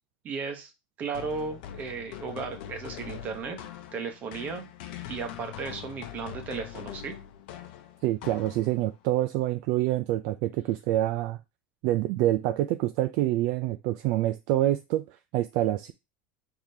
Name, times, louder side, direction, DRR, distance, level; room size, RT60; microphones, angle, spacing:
voice 1, 0.2-0.7 1.0-3.6 3.9-4.7 5.1-7.2, right 5 dB, 35° right, 5 dB, 1.0 m, -35 dB
sound 1, 1.1-9.0, left 11 dB, 75° left, 0.7 m, -43 dB
voice 2, 8.0-11.4 11.8-15.1 15.3-15.9, right 14 dB, 55° right, 10 dB, 0.3 m, -26 dB
4.8 x 3.7 x 2.7 m, 0.24 s
supercardioid pair, 150°, 5 cm